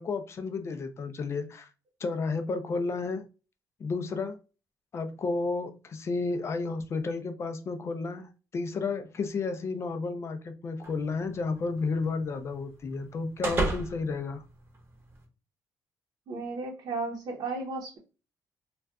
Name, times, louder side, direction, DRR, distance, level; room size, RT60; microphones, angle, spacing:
voice 1, 0.0-1.7 2.0-3.3 3.8-4.4 4.9-14.4, left 4 dB, 40° left, 0.4 m, -32 dB
sound 1, 10.8-15.2, right 2 dB, 30° right, 0.9 m, -36 dB
voice 2, 16.3-18.0, right 3 dB, 60° right, 0.7 m, -34 dB
2.5 x 2.2 x 3.4 m
cardioid pair, 125°, 7 cm